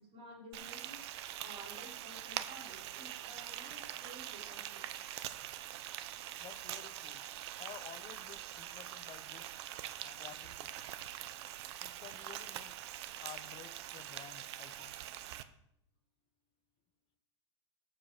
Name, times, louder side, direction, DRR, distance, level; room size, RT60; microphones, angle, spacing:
voice 1, 0.0-4.9, equal, 35° right, -3 dB, 4.5 m, -53 dB
Frying (food), 0.5-15.4, right 12 dB, 60° right, 0.7 m, -44 dB
voice 2, 6.4-7.2 7.6-9.5 10.0-10.9 11.8-12.8 13.2-15.1, left 11 dB, 35° left, 14 dB, 0.8 m, -53 dB
7.5 x 7.5 x 6.4 m, 0.76 s
hypercardioid pair, 115°, 15 cm